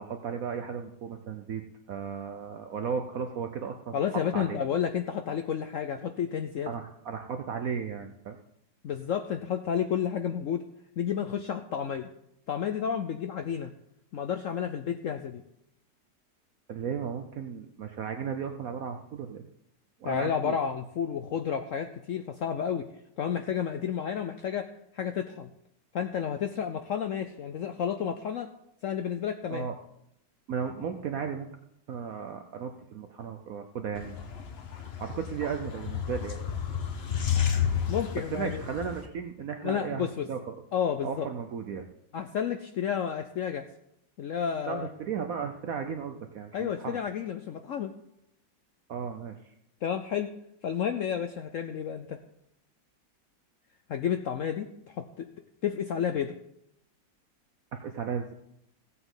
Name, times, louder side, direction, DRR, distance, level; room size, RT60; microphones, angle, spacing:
voice 1, 0.0-4.0 4.3-4.6 6.7-8.4 16.7-19.5 20.0-20.6 29.5-29.7 30.5-31.5 31.9-34.2 34.8-36.4 38.3-40.6 41.0-41.9 44.7-47.0 48.9-49.4 57.7-58.3, right 6 dB, 60° right, 6 dB, 1.0 m, -35 dB
voice 2, 3.9-6.7 8.8-10.6 11.0-12.1 12.5-13.7 14.1-15.4 20.0-22.9 23.2-24.7 24.9-25.5 25.9-28.5 28.8-29.7 37.9-38.6 39.6-40.3 40.7-41.3 42.1-43.7 44.2-44.9 46.5-47.9 49.8-50.3 50.6-52.2 53.9-55.3 55.6-56.3, left 8 dB, 70° left, 8 dB, 0.7 m, -31 dB
sound 1, 33.9-39.1, left 8 dB, 45° left, 0.9 m, -31 dB
15.5 x 8.0 x 3.9 m, 0.77 s
omnidirectional pair, 1.9 m